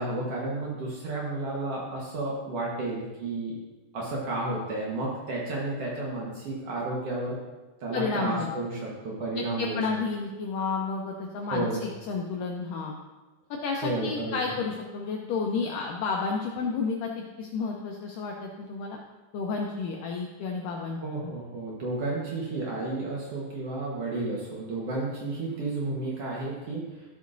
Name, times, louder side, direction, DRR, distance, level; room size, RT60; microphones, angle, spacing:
voice 1, 0.0-3.6 3.9-7.4 7.8-9.9 11.4-11.8 13.8-14.5 21.0-27.0, right 2 dB, 80° right, -4 dB, 1.3 m, -32 dB
voice 2, 7.9-8.5 9.4-12.9 13.5-19.0 19.3-21.3, left 4 dB, 85° left, 0 dB, 1.8 m, -31 dB
13.5 x 8.3 x 2.6 m, 1.2 s
omnidirectional pair, 4.7 m